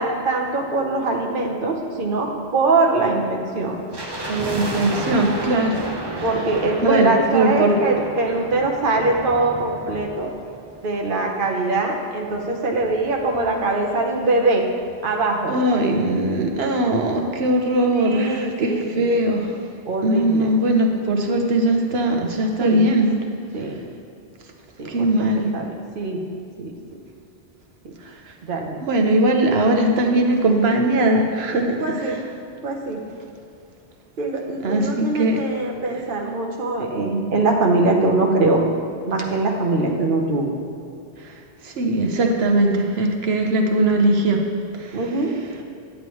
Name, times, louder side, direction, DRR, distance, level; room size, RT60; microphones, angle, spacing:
voice 1, 0.0-3.8 6.2-10.3 10.8-14.6 15.0-15.5 17.9-19.1 19.9-20.5 22.6-22.8 23.5-23.8 24.8-26.2 26.6-26.7 28.4-28.8 31.8-32.2 32.6-33.1 34.2-38.6 39.1-40.5 44.9-45.3, right 2 dB, 60° right, 1 dB, 1.1 m, -22 dB
sound 1, 3.9-11.2 11.4-11.5 12.2-14.0 14.3-14.4 14.6-14.9 15.4-15.5, right 2 dB, 30° right, 0.6 m, -33 dB
voice 2, 4.3-5.8 6.1-6.3 6.8-7.1 7.3-7.8 15.5-19.6 20.0-23.1 24.9-25.5 28.8-32.2 34.6-35.4 39.8-39.9 41.6-44.4 44.7-45.0, right 1 dB, 80° right, 3 dB, 1.2 m, -20 dB
10.0 x 8.5 x 3.1 m, 2.7 s
omnidirectional pair, 1.0 m